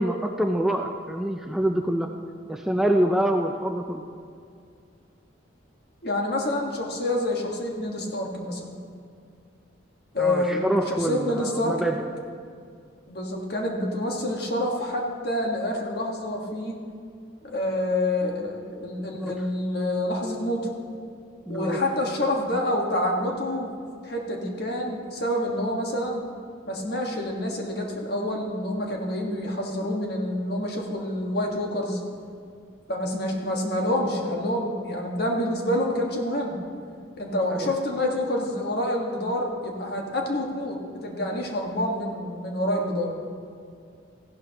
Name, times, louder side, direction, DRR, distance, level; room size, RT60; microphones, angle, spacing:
voice 1, 0.0-2.2 2.5-4.0 10.2-12.1 19.2-19.4 21.5-21.8 37.5-37.7, right 1 dB, ahead, 3 dB, 0.3 m, -26 dB
voice 2, 6.0-8.8 10.1-10.6 10.9-11.9 13.1-16.8 17.4-20.7 21.5-23.8 24.0-26.2 26.7-32.0 32.9-36.6 37.2-40.8 41.0-43.1, left 1 dB, 55° left, 0 dB, 1.5 m, -27 dB
15.0 x 12.0 x 2.9 m, 2.3 s
head